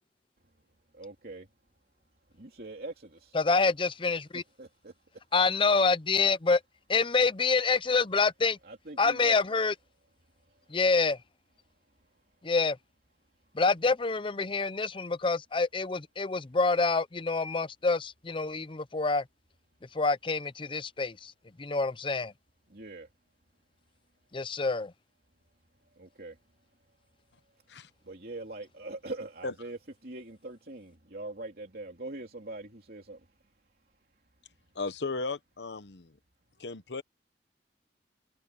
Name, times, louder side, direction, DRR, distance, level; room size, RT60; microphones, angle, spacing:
voice 1, 0.9-1.5 2.4-3.3 4.6-4.9 8.6-9.4 22.7-23.1 26.0-26.3 28.1-33.2, right 2 dB, 55° right, 3.2 m, -42 dB
voice 2, 3.3-4.4 5.3-6.6 6.9-8.6 9.0-9.7 10.7-11.2 12.4-12.8 13.5-19.2 19.9-21.3 21.6-22.3 24.3-24.9, left 4 dB, 30° left, 0.6 m, -27 dB
voice 3, 34.7-36.1 36.6-37.0, left 3 dB, 75° left, 1.0 m, -35 dB
head